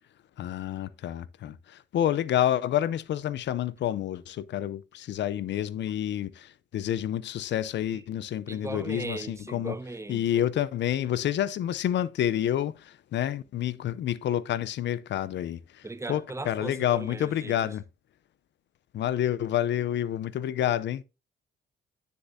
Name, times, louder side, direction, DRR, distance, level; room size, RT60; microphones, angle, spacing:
voice 1, 0.4-9.8 10.1-17.8 18.9-21.0, left 11 dB, 65° left, 0.6 m, -29 dB
voice 2, 8.5-10.5 15.8-17.7, right 2 dB, 15° right, 0.7 m, -38 dB
9.7 x 6.7 x 2.6 m
cardioid pair, 90°, 20 cm